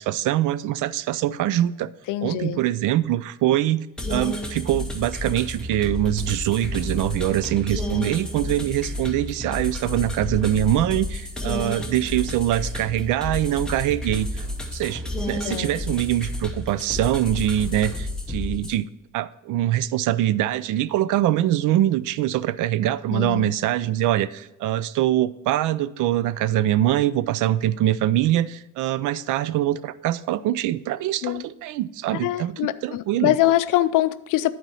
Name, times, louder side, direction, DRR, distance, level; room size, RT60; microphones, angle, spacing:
voice 1, 0.0-1.9 2.2-14.5 14.7-33.3, right 13 dB, 70° right, 17 dB, 0.5 m, -23 dB
voice 2, 2.1-2.6 15.4-15.7 23.1-23.5 31.2-31.4 32.1-34.5, left 15 dB, 75° left, 15 dB, 0.5 m, -23 dB
sound 1, 4.0-18.8, left 1 dB, ahead, 0.8 m, -31 dB
11.0 x 4.5 x 5.4 m, 0.93 s
cardioid pair, 170°, 32 cm